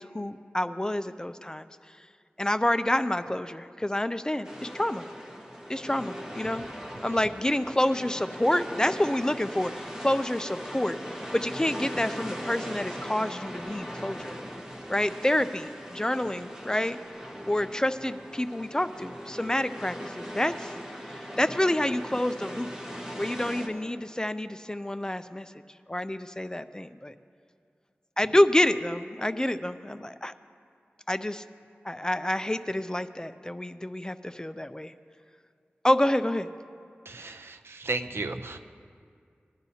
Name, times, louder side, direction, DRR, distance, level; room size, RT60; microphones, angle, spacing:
voice 1, 0.0-1.7 2.4-5.0 5.7-6.6 7.0-11.0 11.3-14.4 14.9-17.0 17.5-20.7 21.2-22.7 23.1-25.5 25.9-27.1 28.2-30.3 31.1-31.4 31.8-34.9 35.8-36.5, left 1 dB, 15° left, 11 dB, 0.4 m, -28 dB
sound 1, 4.4-23.7, equal, 15° right, 1.5 m, -39 dB
voice 2, 37.1-38.6, right 3 dB, 80° right, 7 dB, 0.5 m, -34 dB
20.5 x 11.5 x 2.8 m, 2.2 s
wide cardioid pair, 70°, 4 cm